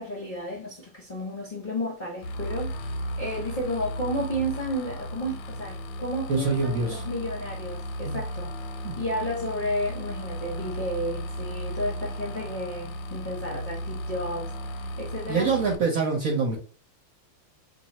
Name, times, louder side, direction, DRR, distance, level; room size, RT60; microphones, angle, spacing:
voice 1, 0.0-8.5 9.0-15.5, equal, 40° left, 0.7 m, -32 dB
sound 1, 2.2-15.8, equal, 90° left, 1.5 m, -35 dB
voice 2, 6.3-7.0 8.0-8.2 8.8-8.9 15.3-16.6, right 4 dB, 50° right, 1.1 m, -25 dB
3.1 x 2.7 x 4.1 m
omnidirectional pair, 2.3 m